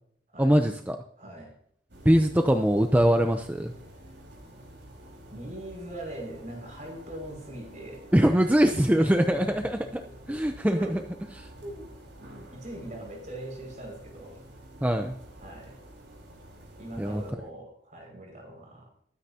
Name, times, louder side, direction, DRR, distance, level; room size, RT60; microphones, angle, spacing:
voice 1, 0.4-1.0 2.0-3.7 8.1-9.8 10.3-11.0 14.8-15.1 17.0-17.2, equal, 10° right, 5 dB, 0.7 m, -22 dB
voice 2, 1.2-1.5 5.3-8.4 8.7-9.7 10.3-10.4 10.7-11.0 11.6-11.9 12.2-14.4 15.4-15.8 16.8-18.9, right 1 dB, 45° right, 1 dB, 5.9 m, -41 dB
sound 1, 1.9-17.3, right 1 dB, 85° right, 4.8 m, -49 dB
22.0 x 9.8 x 2.9 m, 0.66 s
head